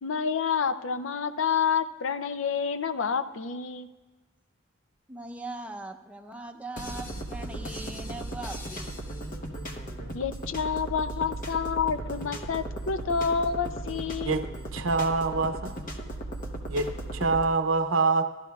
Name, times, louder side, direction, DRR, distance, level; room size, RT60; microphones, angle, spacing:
voice 1, 0.0-3.9 10.1-14.5, left 6 dB, 80° left, 12 dB, 0.5 m, -28 dB
voice 2, 5.1-8.9, right 2 dB, 5° right, 3 dB, 0.6 m, -40 dB
sound 1, 6.8-17.4, right 1 dB, 45° left, 0.9 m, -36 dB
voice 3, 14.7-15.8 16.7-18.2, right 3 dB, 90° right, 9 dB, 0.6 m, -25 dB
16.0 x 12.0 x 2.3 m, 1.2 s
head